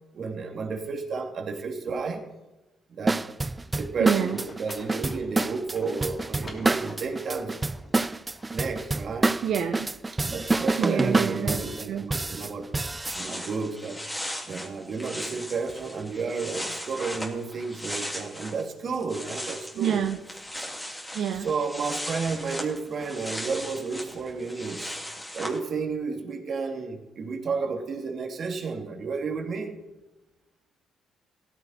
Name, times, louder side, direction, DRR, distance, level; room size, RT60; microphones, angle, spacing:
voice 1, 0.1-2.3 2.9-3.3 3.7-7.6 8.5-9.3 10.1-12.7 13.1-14.0 14.4-20.0 21.3-25.0 25.3-29.8, right 4 dB, 55° right, 2 dB, 2.7 m, -32 dB
sound 1, 3.1-13.2, right 2 dB, 20° right, 0.5 m, -27 dB
Livestock farm animals working animals, 3.9-8.9, left 2 dB, 40° left, 3.4 m, -49 dB
voice 2, 4.0-4.4 9.4-9.9 10.8-12.1 19.8-20.2 21.1-21.5, right 9 dB, 70° right, 6 dB, 0.9 m, -28 dB
sound 2, 12.9-18.6 18.9-25.6, left 1 dB, 10° left, 2.8 m, -37 dB
16.5 x 14.0 x 4.3 m, 1.1 s
cardioid pair, 90°, 0 cm